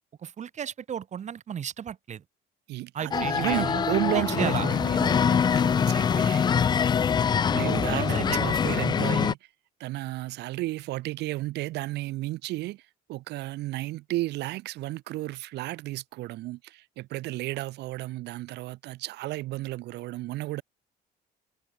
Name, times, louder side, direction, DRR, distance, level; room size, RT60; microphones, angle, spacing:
voice 1, 0.2-2.2 2.9-4.7 7.6-8.6, right 8 dB, 45° right, 2.0 m, -35 dB
voice 2, 2.7-6.4 7.5-9.4 9.8-20.6, right 17 dB, 80° right, 3.9 m, -33 dB
sound 1, 3.1-9.3, left 7 dB, 25° left, 0.3 m, -24 dB
cardioid pair, 110°, 17 cm